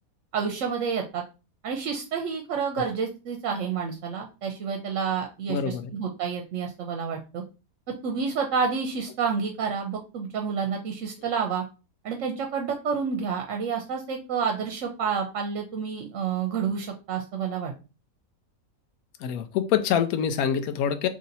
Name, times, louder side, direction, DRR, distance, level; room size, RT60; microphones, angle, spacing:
voice 1, 0.3-1.2 1.6-7.4 7.9-11.6 12.0-17.7, right 6 dB, 65° right, 3 dB, 0.9 m, -29 dB
voice 2, 5.5-5.9 19.2-21.1, left 8 dB, 90° left, 9 dB, 1.1 m, -25 dB
3.1 x 2.7 x 3.9 m, 0.31 s
omnidirectional pair, 1.5 m